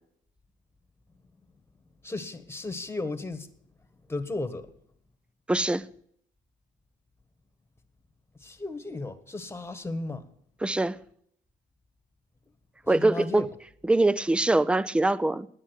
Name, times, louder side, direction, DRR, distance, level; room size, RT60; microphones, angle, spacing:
voice 1, 2.0-3.5 4.1-4.7 8.4-10.2 12.9-13.5, left 2 dB, 10° left, 1.4 m, -34 dB
voice 2, 5.5-5.9 10.6-11.0 12.9-13.5 13.8-15.5, right 2 dB, 5° right, 0.5 m, -23 dB
9.8 x 9.7 x 9.3 m
cardioid pair, 90°, 20 cm